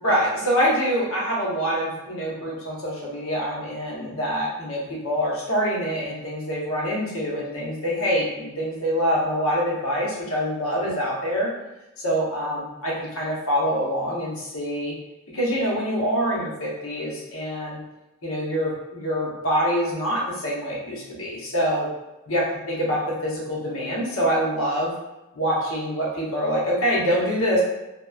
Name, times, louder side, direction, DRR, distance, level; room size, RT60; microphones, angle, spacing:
voice 1, 0.0-11.5 12.0-14.9 15.3-17.8 18.2-21.9 22.3-22.4 22.7-24.9 25.3-27.6, equal, 65° left, -4 dB, 0.8 m, -25 dB
2.9 x 2.0 x 2.3 m, 0.99 s
head